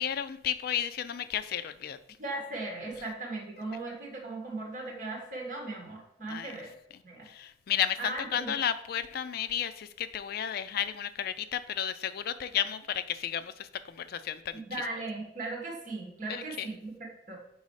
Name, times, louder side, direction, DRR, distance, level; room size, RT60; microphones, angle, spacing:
voice 1, 0.0-2.0 6.3-6.5 7.3-14.8 16.3-16.7, left 9 dB, 55° left, 13 dB, 0.3 m, -33 dB
voice 2, 2.2-6.7 7.0-7.3 8.0-8.5 14.5-17.4, right 2 dB, 45° right, -1 dB, 1.7 m, -38 dB
5.4 x 4.1 x 4.7 m, 0.77 s
head